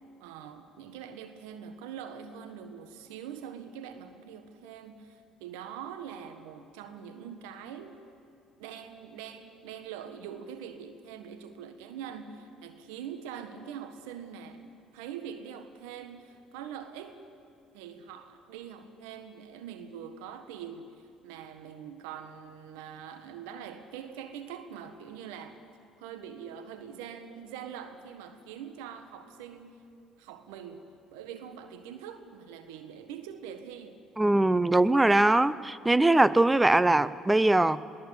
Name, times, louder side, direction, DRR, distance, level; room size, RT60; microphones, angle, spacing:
voice 1, 0.2-8.0 8.6-14.6 14.9-17.2 17.7-20.9 21.2-25.6 26.0-29.8 30.2-30.8 31.1-34.0, right 8 dB, 80° right, 1.5 m, -43 dB
voice 2, 34.2-37.8, right 2 dB, 15° right, 0.7 m, -22 dB
21.0 x 19.0 x 8.4 m
hypercardioid pair, 70°, 0 cm